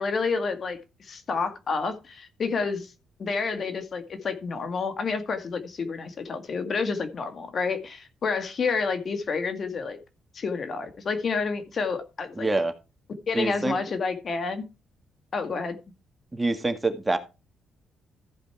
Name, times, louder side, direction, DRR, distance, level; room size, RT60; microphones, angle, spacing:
voice 1, 0.0-2.9 3.2-10.0 10.3-12.5 13.3-14.7 15.3-15.8, left 4 dB, 50° left, 8 dB, 1.8 m, -29 dB
voice 2, 12.4-12.7 13.3-13.8 16.3-17.2, right 2 dB, 15° right, 7 dB, 1.8 m, -25 dB
14.5 x 5.2 x 4.7 m, 0.29 s
cardioid pair, 90°, 0 cm